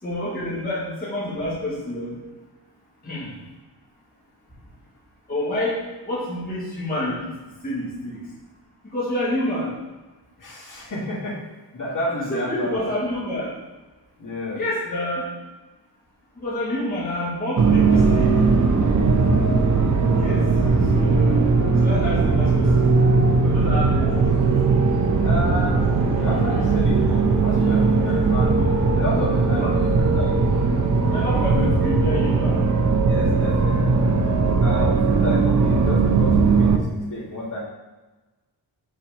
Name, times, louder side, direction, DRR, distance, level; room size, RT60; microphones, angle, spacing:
voice 1, 0.0-2.2 3.0-3.3 5.3-8.3 8.9-9.7 12.3-13.5 14.5-15.3 16.3-18.4 20.0-20.5 20.9-21.4 21.8-23.0 23.4-24.2 27.8-28.2 29.6-29.7 31.0-32.7 32.9-33.0, left 1 dB, 20° left, -9 dB, 1.9 m, -28 dB
voice 2, 10.4-12.9 14.2-14.6 19.9-20.7 21.3-21.4 25.2-28.6 28.9-30.3 31.3-31.8 33.1-34.1 34.6-37.6, left 1 dB, 45° left, -8 dB, 2.1 m, -31 dB
sound 1, 17.6-36.8, right 4 dB, 40° right, 0.5 m, -19 dB
sound 2, 17.9-31.5, left 1 dB, 65° left, 2.1 m, -40 dB
5.8 x 4.1 x 5.1 m, 1.2 s
wide cardioid pair, 170°, 44 cm